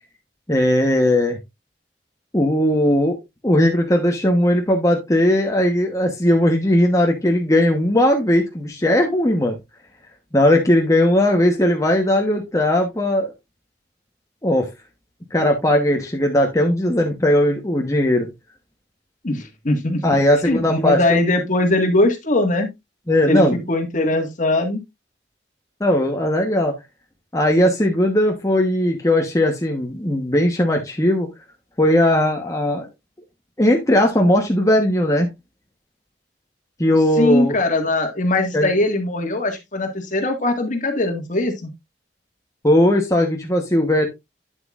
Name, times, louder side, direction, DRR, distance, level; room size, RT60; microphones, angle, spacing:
voice 1, 0.5-1.4 2.3-3.2 3.4-9.6 10.3-13.3 14.4-14.7 15.3-18.3 20.0-21.2 23.1-23.6 25.8-26.7 27.3-31.3 31.8-32.9 33.6-35.3 36.8-37.5 38.5-38.7 42.6-44.1, left 1 dB, 20° left, 1 dB, 1.1 m, -18 dB
voice 2, 19.2-20.2 20.5-22.7 23.3-24.8 37.2-41.7, left 2 dB, 45° left, 6 dB, 1.7 m, -20 dB
9.2 x 7.7 x 2.5 m, 0.21 s
head